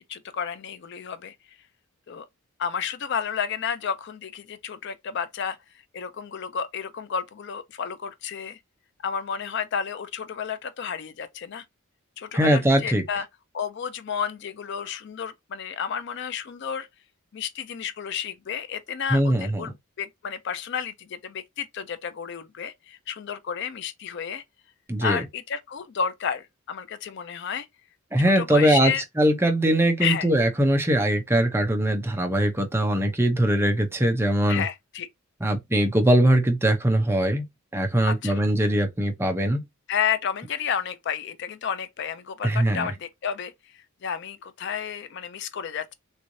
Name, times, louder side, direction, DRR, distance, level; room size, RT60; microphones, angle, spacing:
voice 1, 0.1-1.3 2.1-2.3 2.6-5.6 5.9-8.6 9.0-11.6 12.2-13.3 13.5-16.9 17.3-19.7 20.0-24.4 25.0-27.7 28.4-29.0 30.0-30.3 34.5-35.1 38.1-38.4 39.9-43.5 44.0-45.9, left 7 dB, 50° left, 0.4 m, -31 dB
voice 2, 12.3-13.0 19.1-19.7 24.9-25.2 28.1-34.6 35.4-37.5 37.7-39.6 42.4-42.9, right 1 dB, 10° right, 0.6 m, -21 dB
3.5 x 3.1 x 2.6 m
head